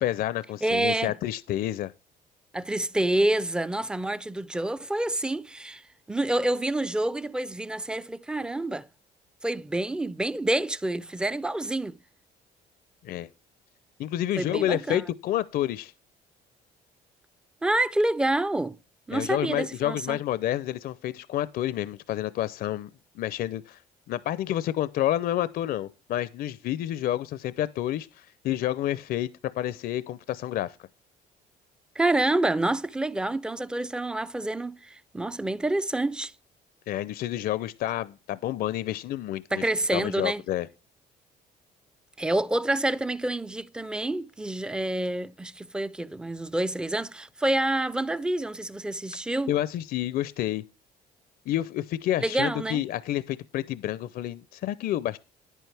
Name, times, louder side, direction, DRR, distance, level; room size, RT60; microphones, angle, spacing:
voice 1, 0.0-1.9 13.0-13.3 14.0-15.9 19.1-22.9 23.2-23.8 24.1-29.3 29.6-30.8 36.9-39.7 39.9-40.7 49.5-50.6 51.5-55.2, left 13 dB, 60° left, 0.5 m, -29 dB
voice 2, 0.6-1.1 2.5-5.8 6.1-8.9 9.4-12.0 14.4-15.0 17.6-18.8 19.1-20.2 32.0-36.3 39.5-40.4 42.2-49.5 52.2-52.8, right 1 dB, 5° right, 0.4 m, -27 dB
10.0 x 9.1 x 3.3 m
cardioid pair, 110°, 17 cm